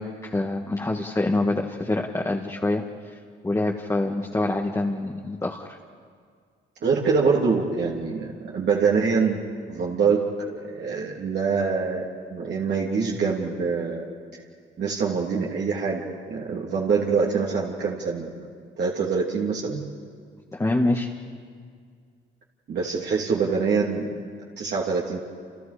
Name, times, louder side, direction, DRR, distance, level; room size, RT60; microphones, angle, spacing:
voice 1, 0.0-3.2 3.4-5.8 20.5-21.1, left 2 dB, 15° left, 0 dB, 1.8 m, -26 dB
voice 2, 6.8-9.4 9.7-14.0 14.8-18.3 18.8-19.8 22.7-24.1 24.6-25.2, right 5 dB, 60° right, -4 dB, 3.0 m, -25 dB
29.5 x 28.5 x 5.1 m, 2.1 s
cardioid pair, 90°, 20 cm